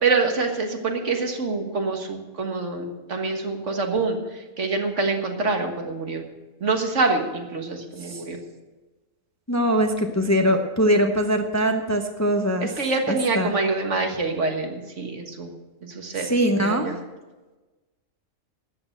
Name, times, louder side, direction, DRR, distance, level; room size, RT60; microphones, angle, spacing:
voice 1, 0.0-6.3 6.6-8.4 12.6-15.5 15.8-16.3 16.6-17.0, right 3 dB, 65° right, 3 dB, 1.9 m, -26 dB
voice 2, 9.5-12.7 13.1-13.5 16.2-16.9, equal, 15° left, 5 dB, 0.8 m, -22 dB
13.0 x 8.8 x 7.8 m, 1.2 s
omnidirectional pair, 1.4 m